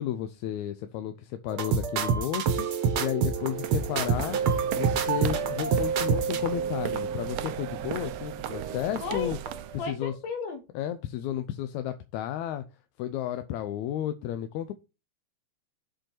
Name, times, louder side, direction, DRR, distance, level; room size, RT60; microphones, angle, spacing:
voice 1, 0.0-4.4 4.7-9.4 9.9-10.1 10.8-12.6 13.0-14.7, left 11 dB, 85° left, 2.0 m, -32 dB
sound 1, 1.5-9.2 9.5-9.8, right 6 dB, 60° right, 1.5 m, -28 dB
sound 2, 3.3-9.8, right 13 dB, 80° right, 1.4 m, -38 dB
voice 2, 9.0-9.4 9.8-10.6, left 5 dB, 65° left, 2.8 m, -33 dB
7.6 x 4.6 x 4.4 m
omnidirectional pair, 3.3 m